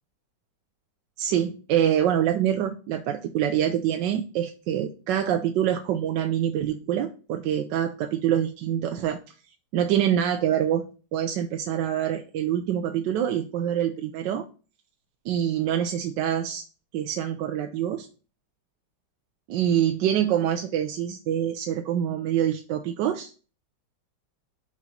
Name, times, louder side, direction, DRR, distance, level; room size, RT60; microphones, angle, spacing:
voice 1, 1.2-9.2 9.7-10.8 11.1-14.4 15.2-16.6 16.9-18.1 19.5-23.3, right 10 dB, 85° right, 6 dB, 1.3 m, -25 dB
6.1 x 3.8 x 5.7 m, 0.36 s
omnidirectional pair, 1.9 m